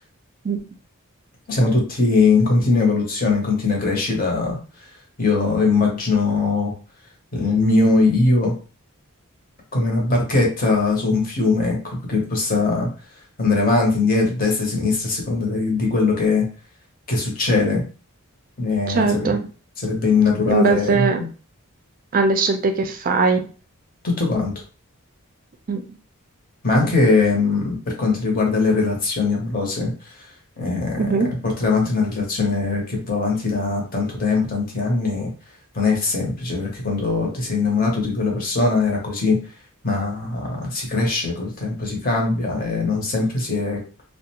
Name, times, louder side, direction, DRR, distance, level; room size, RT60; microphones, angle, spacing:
voice 1, 1.5-4.6 5.2-6.7 7.3-8.5 9.7-12.9 13.4-16.5 17.1-17.8 18.6-19.3 19.8-21.3 24.0-24.5 26.6-29.9 30.6-31.1 31.4-35.3 35.7-39.4 39.8-43.8, left 3 dB, 40° left, 0 dB, 0.8 m, -21 dB
voice 2, 18.9-19.4 20.5-21.3 22.1-23.4 25.7-25.8 31.0-31.3, right 4 dB, 40° right, 6 dB, 0.4 m, -20 dB
2.4 x 2.1 x 2.8 m, 0.37 s
head